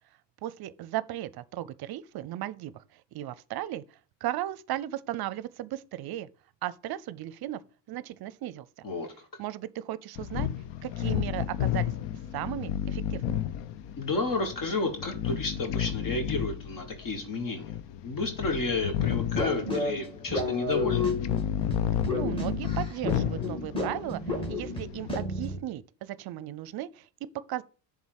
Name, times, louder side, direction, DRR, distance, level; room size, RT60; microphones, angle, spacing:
voice 1, 0.4-3.8 4.2-6.3 6.6-7.6 7.9-8.7 9.4-10.5 10.8-11.9 12.3-13.4 22.1-27.1 27.5-27.6, right 14 dB, 55° right, 0.6 m, -36 dB
voice 2, 8.8-9.3 14.0-17.7 18.0-21.1, left 3 dB, 45° left, 1.6 m, -31 dB
sound 1, 10.2-25.2, left 10 dB, 65° left, 0.8 m, -32 dB
sound 2, 19.3-25.6, left 2 dB, 10° left, 2.6 m, -32 dB
7.2 x 3.7 x 6.5 m
cardioid pair, 105°, 47 cm